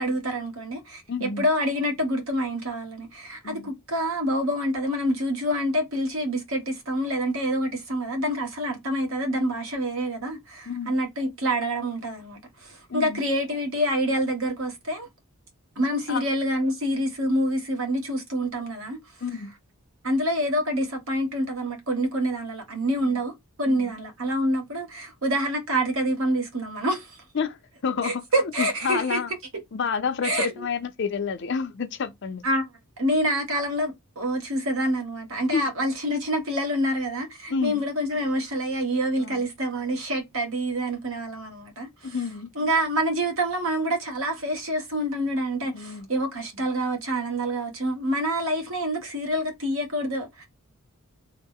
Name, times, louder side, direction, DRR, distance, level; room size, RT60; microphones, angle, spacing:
voice 1, 0.0-15.1 15.8-19.0 20.0-27.2 28.0-29.2 30.2-30.6 32.4-32.6 33.0-41.9 42.6-50.5, equal, 65° right, 1.1 m, -27 dB
voice 2, 1.1-1.5 3.4-3.7 10.7-11.0 12.9-13.2 16.1-16.2 19.2-19.5 23.0-23.2 23.7-23.9 27.3-27.6 27.8-28.2 28.6-29.3 29.7-32.4 35.5-35.7 37.5-37.8 39.2-39.4 42.0-42.5 45.7-46.1, left 5 dB, 50° left, 0.5 m, -29 dB
3.1 x 2.0 x 3.5 m
head